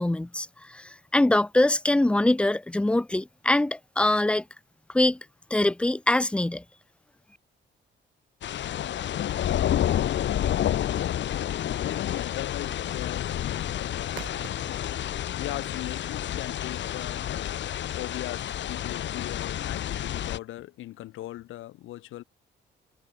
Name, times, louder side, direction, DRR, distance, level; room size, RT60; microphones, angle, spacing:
voice 1, 0.0-4.4 4.9-5.2 5.5-6.6, left 1 dB, 5° left, 0.4 m, -23 dB
sound 1, 8.4-20.4, left 11 dB, 65° left, 1.6 m, -29 dB
voice 2, 11.8-14.3 15.3-17.2 18.0-22.2, left 15 dB, 90° left, 2.8 m, -39 dB
sound 2, 14.0-15.4, right 11 dB, 70° right, 7.2 m, -49 dB
cardioid pair, 90°, 20 cm